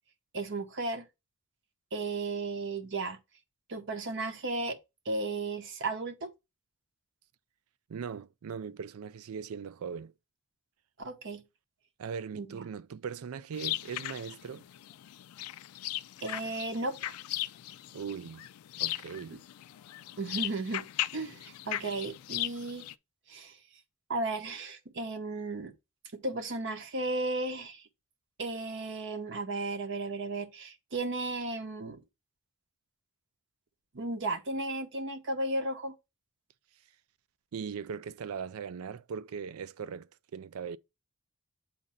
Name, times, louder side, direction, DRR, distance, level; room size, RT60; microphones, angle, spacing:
voice 1, 0.3-1.0 1.9-3.2 3.7-4.8 5.1-6.3 11.0-11.4 12.3-12.6 16.2-17.1 19.3-19.4 20.2-20.8 21.1-22.9 23.3-23.6 24.1-25.7 26.1-27.8 28.4-32.0 33.9-35.9, right 2 dB, 55° right, 0.8 m, -34 dB
voice 2, 7.9-10.1 12.0-14.6 17.9-18.5 18.8-19.4 37.5-40.8, right 6 dB, 75° right, 0.4 m, -39 dB
sound 1, 13.5-22.9, left 15 dB, 85° left, 0.3 m, -38 dB
7.3 x 2.6 x 5.4 m
head